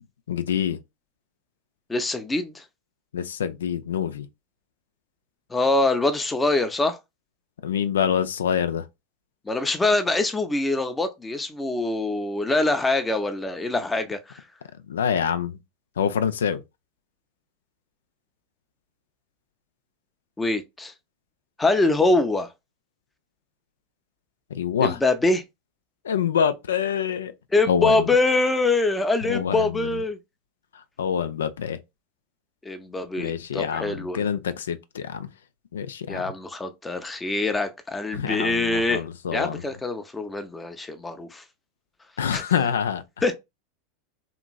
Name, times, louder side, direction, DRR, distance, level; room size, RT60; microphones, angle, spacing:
voice 1, 0.3-0.8 3.1-4.3 7.6-8.9 14.9-15.6 16.0-16.6 24.5-25.0 26.0-27.3 27.7-28.1 29.2-30.0 30.7-31.8 33.2-35.3 35.7-36.3 38.1-39.6 42.2-43.0, left 8 dB, 85° left, 0.3 m, -26 dB
voice 2, 1.9-2.6 5.5-7.0 9.5-14.4 20.4-20.9 21.6-22.5 24.8-25.4 27.5-30.2 32.6-34.3 36.1-39.0 39.3-41.4 42.3-42.4 43.2-43.3, left 2 dB, 15° left, 0.5 m, -24 dB
2.9 x 2.5 x 2.3 m
hypercardioid pair, 100°, 0 cm